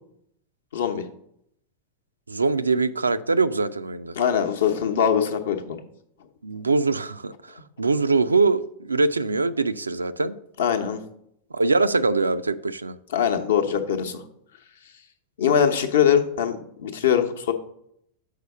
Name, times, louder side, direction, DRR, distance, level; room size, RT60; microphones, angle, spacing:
voice 1, 0.7-1.1 4.1-5.8 10.6-11.0 13.1-14.2 15.4-17.5, left 8 dB, 60° left, 0.8 m, -22 dB
voice 2, 2.3-4.1 6.4-10.4 11.5-13.0, right 3 dB, 80° right, 0.3 m, -23 dB
6.6 x 4.7 x 6.5 m
figure-of-eight pair, 90°, 0 cm